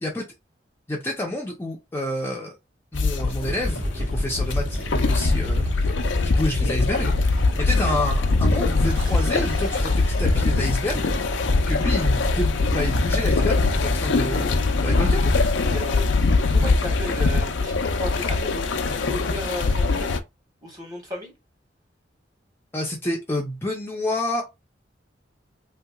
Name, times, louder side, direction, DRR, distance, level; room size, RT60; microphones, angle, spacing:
voice 1, 0.9-2.6 2.9-6.0 6.2-11.2 11.6-15.4 22.7-24.4, left 1 dB, 15° left, 0.5 m, -29 dB
sound 1, 2.9-20.2, left 3 dB, 85° left, 0.5 m, -22 dB
sound 2, 3.4-15.0, equal, 55° right, 1.5 m, -30 dB
sound 3, 8.9-10.9, equal, 85° right, 1.8 m, -39 dB
voice 2, 15.7-16.1 16.5-20.2 20.6-21.3, left 1 dB, 20° right, 1.4 m, -34 dB
3.4 x 2.9 x 2.3 m
head